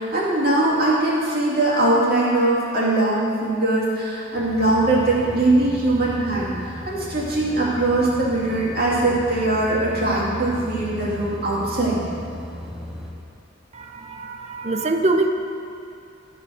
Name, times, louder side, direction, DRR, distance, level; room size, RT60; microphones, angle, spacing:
voice 1, 0.0-12.0, right 2 dB, 50° right, -6 dB, 2.5 m, -21 dB
sound 1, 4.3-13.1, left 1 dB, ahead, 1.4 m, -35 dB
voice 2, 13.7-15.3, right 2 dB, 35° right, 5 dB, 0.6 m, -23 dB
12.0 x 5.5 x 6.3 m, 2.6 s
head